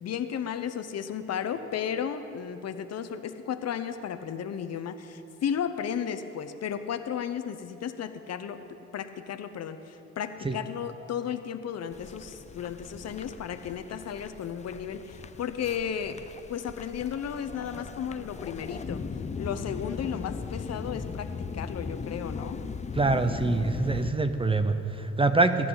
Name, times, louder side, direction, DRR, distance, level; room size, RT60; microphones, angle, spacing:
voice 1, 0.0-8.6 8.9-16.2 16.5-19.0 19.4-22.6, left 8 dB, 55° left, 10 dB, 0.8 m, -34 dB
sound 1, 11.9-24.1, left 5 dB, 25° left, 0.5 m, -38 dB
voice 2, 22.9-25.7, right 3 dB, 20° right, 9 dB, 0.6 m, -25 dB
20.5 x 10.0 x 3.9 m, 2.9 s
cardioid pair, 90°, 30 cm